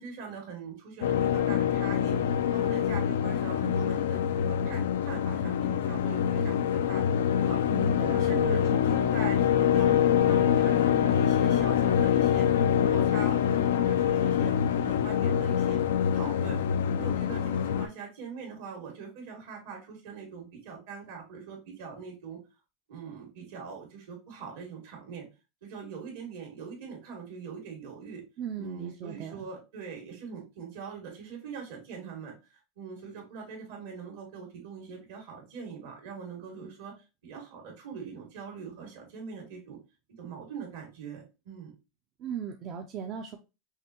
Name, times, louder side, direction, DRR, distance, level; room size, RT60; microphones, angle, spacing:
voice 1, 0.0-7.6 8.1-15.8 16.1-16.6 17.0-22.4 22.9-25.3 25.6-28.2 28.6-32.3 32.8-36.9 37.2-39.8 40.2-41.7, right 6 dB, 75° right, 1 dB, 2.2 m, -42 dB
sound 1, 1.0-17.9, left 9 dB, 85° left, 0.4 m, -25 dB
voice 2, 7.7-8.5 28.4-29.5 42.2-43.4, right 7 dB, 45° right, 4 dB, 0.5 m, -37 dB
5.7 x 2.6 x 2.9 m, 0.28 s
supercardioid pair, 120°, 0 cm